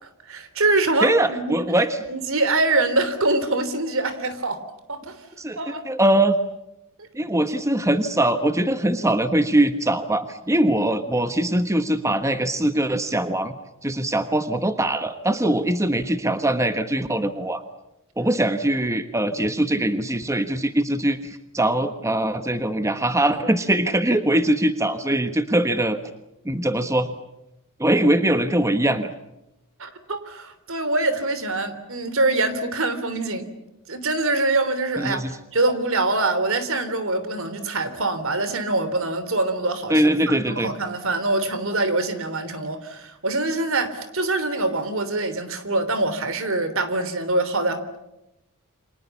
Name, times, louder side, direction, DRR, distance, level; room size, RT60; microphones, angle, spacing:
voice 1, 0.0-1.6 2.0-4.6 4.9-5.2 5.6-5.8 29.8-33.5 33.9-35.2 35.5-48.0, right 2 dB, 65° right, 12 dB, 3.3 m, -24 dB
voice 2, 1.0-2.0 5.4-5.6 5.8-6.4 7.1-13.5 13.8-17.6 18.2-26.0 26.4-27.1 27.8-29.1 35.0-35.3 39.9-40.7, right 1 dB, 15° right, 9 dB, 1.3 m, -22 dB
29.5 x 26.5 x 7.1 m, 0.90 s
head